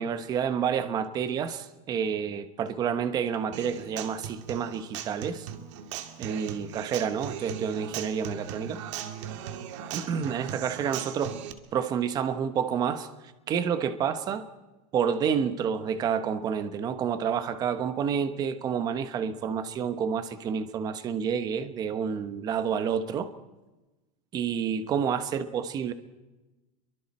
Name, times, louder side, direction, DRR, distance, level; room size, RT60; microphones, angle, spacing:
voice 1, 0.0-5.5 6.2-8.8 9.9-11.4 11.7-13.1 13.5-14.5 14.9-23.3 24.3-25.9, right 7 dB, 20° right, 10 dB, 1.1 m, -29 dB
Human voice / Acoustic guitar, 3.5-11.5, right 9 dB, 55° right, 2.1 m, -38 dB
29.0 x 23.5 x 4.3 m, 1.1 s
supercardioid pair, 175°, 18 cm